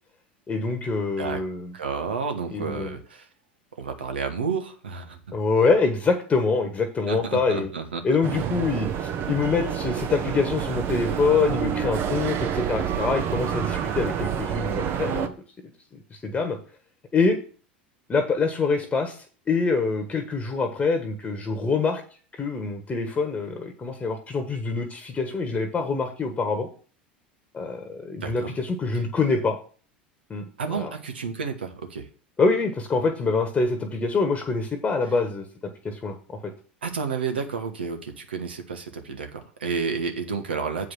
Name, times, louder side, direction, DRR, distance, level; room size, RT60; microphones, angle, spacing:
voice 1, 0.5-1.7 2.5-2.9 5.3-7.7 8.0-15.3 16.1-16.6 17.1-17.4 18.1-22.0 22.3-26.7 27.5-29.6 30.3-30.4 30.7-30.9 32.4-35.4 35.8-36.4, left 4 dB, 20° left, 5 dB, 1.3 m, -25 dB
voice 2, 1.7-3.3 3.8-5.2 7.1-8.2 28.2-28.6 28.9-29.2 30.6-32.1 36.8-40.9, right 5 dB, 85° right, 6 dB, 1.3 m, -31 dB
sound 1, 8.2-15.3, right 8 dB, 45° right, 1.0 m, -28 dB
7.8 x 5.0 x 6.2 m, 0.40 s
hypercardioid pair, 80°, 6 cm